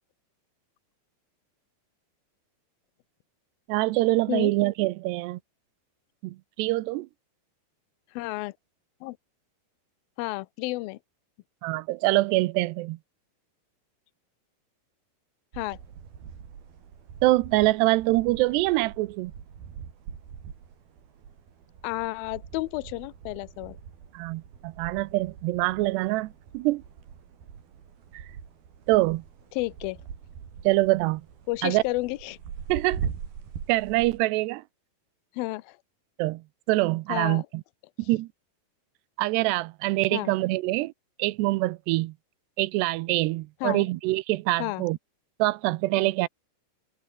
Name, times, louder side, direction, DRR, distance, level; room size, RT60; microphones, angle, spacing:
voice 1, 3.7-5.4 6.2-7.1 11.6-13.0 17.2-19.3 24.1-26.8 28.1-28.2 28.9-29.2 30.6-31.2 31.6-31.8 32.7-33.0 33.7-34.6 36.2-37.6 38.1-38.3 39.2-40.9 41.2-42.1 42.6-45.0 45.4-46.3, right 20 dB, 85° right, 2.8 m, -25 dB
voice 2, 8.2-8.5 9.0-9.2 10.2-11.0 15.5-15.8 21.8-23.8 29.5-30.0 31.5-32.4 35.4-35.8 37.1-37.4 40.1-40.3 43.6-43.9 44.6-44.8, left 20 dB, 75° left, 2.3 m, -31 dB
sound 1, 15.5-34.2, right 7 dB, 65° right, 5.0 m, -42 dB
omnidirectional pair, 4.8 m